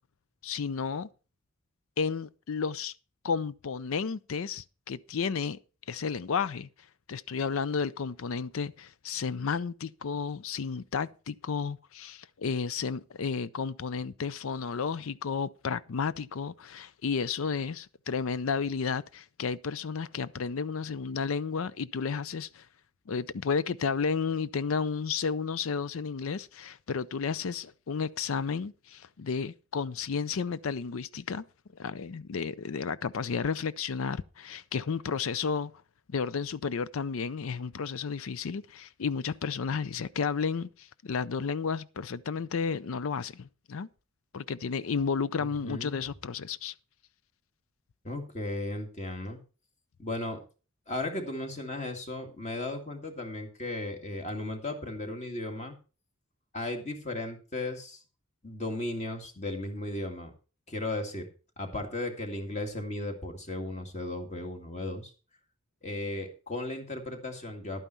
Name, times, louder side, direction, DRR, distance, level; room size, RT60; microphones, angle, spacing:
voice 1, 0.4-1.1 2.0-2.9 3.2-5.6 5.9-6.7 7.1-22.7 23.1-31.4 31.7-35.7 36.1-43.9 44.3-46.7, left 5 dB, 65° left, 0.5 m, -32 dB
voice 2, 45.4-46.0 48.0-49.4 50.0-50.4 50.9-55.8 56.5-58.0 58.4-60.3 60.7-61.3 61.6-65.1 65.8-67.9, left 2 dB, 35° left, 2.0 m, -35 dB
11.5 x 9.1 x 4.5 m
head